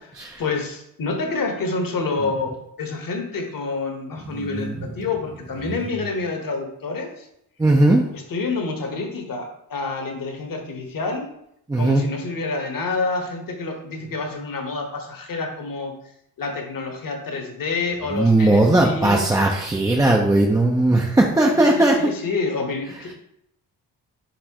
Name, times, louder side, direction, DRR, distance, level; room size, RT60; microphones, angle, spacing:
voice 1, 0.4-2.5 2.8-7.3 8.1-11.2 11.8-15.9 16.4-19.4 21.5-23.1, left 3 dB, 45° left, 3 dB, 1.0 m, -28 dB
voice 2, 4.3-4.8 7.6-8.0 11.7-12.0 18.1-22.1, right 2 dB, 10° right, 0 dB, 0.4 m, -18 dB
4.2 x 3.9 x 2.8 m, 0.76 s
supercardioid pair, 60°, 46 cm